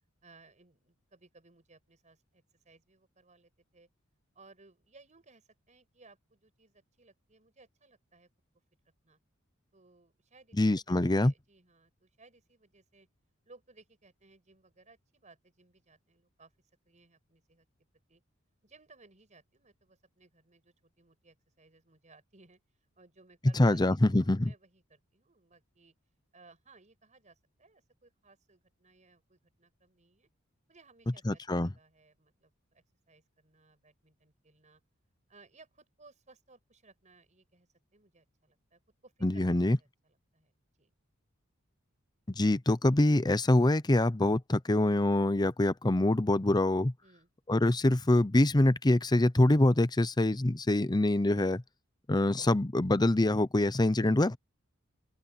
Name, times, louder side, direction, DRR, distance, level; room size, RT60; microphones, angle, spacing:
voice 1, 0.2-3.9 4.3-8.3 9.0-9.2 9.7-13.1 13.4-16.5 16.9-17.7 18.1-18.2 18.6-22.6 23.0-25.9 26.3-30.3 30.7-34.8 35.3-40.5 40.8-40.9 47.0-47.3, right 3 dB, 35° right, 5.9 m, -61 dB
voice 2, 10.6-11.3 23.6-24.5 31.3-31.7 39.2-39.8 42.4-46.9 47.5-51.6 52.1-54.4, left 1 dB, 20° left, 0.7 m, -25 dB
open air
head